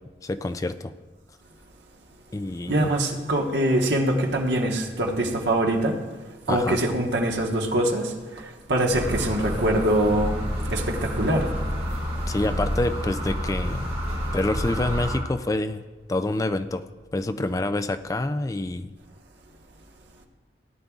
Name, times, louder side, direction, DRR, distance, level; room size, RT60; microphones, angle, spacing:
voice 1, 0.2-0.9 2.3-2.9 6.5-6.8 12.3-13.9 14.3-15.8 16.1-16.8 17.1-18.9, left 2 dB, 20° left, 10 dB, 0.3 m, -27 dB
voice 2, 2.7-6.0 6.5-8.1 8.7-10.4 10.7-11.5, right 1 dB, 75° right, 1 dB, 1.3 m, -23 dB
sound 1, 8.9-15.2, equal, 40° right, 3.8 m, -29 dB
17.0 x 9.7 x 2.4 m, 1.3 s
head